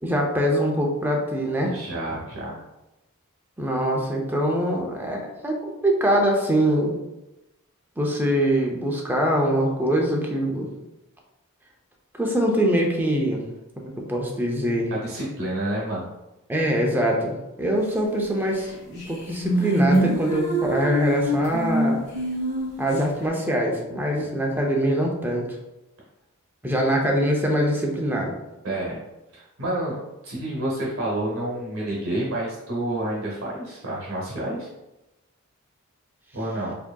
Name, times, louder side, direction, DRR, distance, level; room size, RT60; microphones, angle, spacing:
voice 1, 0.0-1.8 3.6-6.9 8.0-10.7 12.1-13.4 13.8-14.9 16.5-22.0 22.8-25.5 26.6-28.3, equal, 10° right, 0 dB, 0.5 m, -23 dB
voice 2, 1.6-2.6 14.9-16.1 24.2-24.3 28.6-29.0 29.3-30.0 30.2-34.7 36.3-36.8, right 1 dB, 65° right, -4 dB, 0.9 m, -29 dB
sound 1, 18.6-18.7 19.0-23.0, right 1 dB, 50° left, 1.4 m, -24 dB
4.7 x 2.8 x 2.2 m, 0.98 s
head